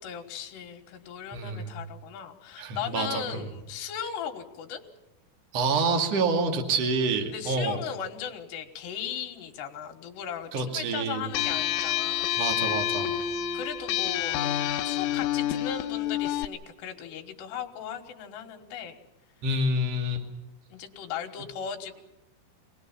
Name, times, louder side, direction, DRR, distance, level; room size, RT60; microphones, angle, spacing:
voice 1, 0.0-4.9 7.3-12.3 13.5-14.4 14.9-19.0 20.7-22.0, left 8 dB, 65° left, 4 dB, 3.4 m, -37 dB
voice 2, 1.3-1.7 2.6-3.4 5.5-7.8 10.5-11.3 12.4-13.2 19.4-20.2, right 3 dB, 40° right, 4 dB, 2.6 m, -27 dB
sound 1, 11.3-16.5, left 11 dB, 85° left, 3.6 m, -28 dB
26.5 x 19.0 x 7.2 m, 0.95 s
omnidirectional pair, 5.7 m